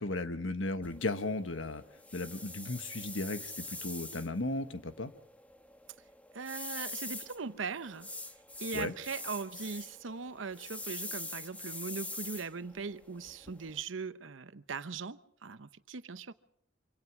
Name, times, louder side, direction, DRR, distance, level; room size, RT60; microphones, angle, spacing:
voice 1, 0.0-1.8 2.1-5.1 8.7-8.9, left 2 dB, 80° left, 1.4 m, -35 dB
sound 1, 0.8-13.8, left 2 dB, 10° left, 1.2 m, -45 dB
voice 2, 6.3-8.1 8.6-16.3, right 5 dB, 75° right, 0.8 m, -40 dB
26.0 x 17.5 x 6.0 m
head